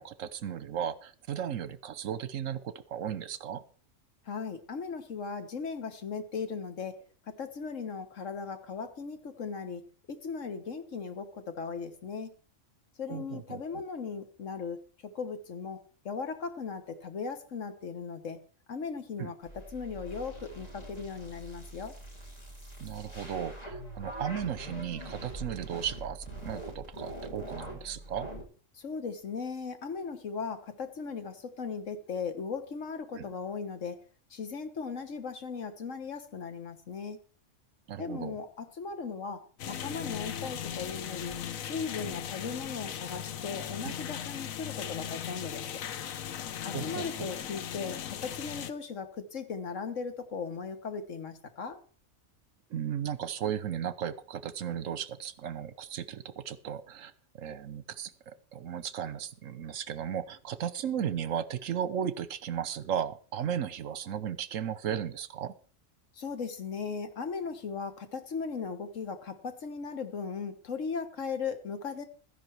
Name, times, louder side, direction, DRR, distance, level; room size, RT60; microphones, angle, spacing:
voice 1, 0.0-3.6 13.1-13.8 19.2-19.3 22.8-28.3 33.1-33.3 37.9-38.4 43.8-43.9 46.7-47.3 52.7-57.1 57.4-65.5, right 9 dB, 75° right, 15 dB, 1.2 m, -35 dB
voice 2, 4.2-12.3 13.0-15.8 16.0-18.4 18.7-21.9 28.7-37.2 38.0-45.8 46.6-51.8 66.1-72.1, left 5 dB, 70° left, 8 dB, 1.6 m, -38 dB
sound 1, 19.4-28.4, right 1 dB, 30° left, 2.8 m, -43 dB
sound 2, 39.6-48.7, left 9 dB, 90° left, 1.2 m, -38 dB
13.5 x 10.5 x 4.5 m, 0.40 s
omnidirectional pair, 1.4 m